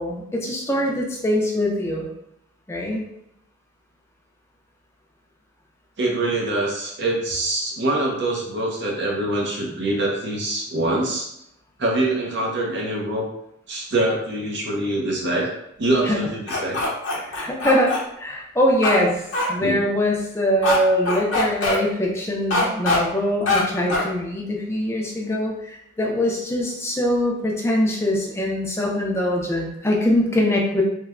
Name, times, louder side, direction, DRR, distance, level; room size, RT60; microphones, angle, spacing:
voice 1, 0.0-2.1 2.7-3.0 16.0-16.3 17.3-19.2 19.5-30.8, left 1 dB, 15° left, -2 dB, 0.4 m, -23 dB
voice 2, 6.0-11.3 11.8-13.2 13.7-15.5 15.8-16.8 19.6-19.8, right 1 dB, 60° right, -2 dB, 0.6 m, -24 dB
sound 1, 16.5-18.0 18.8-19.0 19.3-19.5 20.6-20.8 21.1-21.8 22.5-23.0 23.5-23.6 23.9-24.1, left 2 dB, 65° left, 0.7 m, -22 dB
3.1 x 2.1 x 2.4 m, 0.77 s
head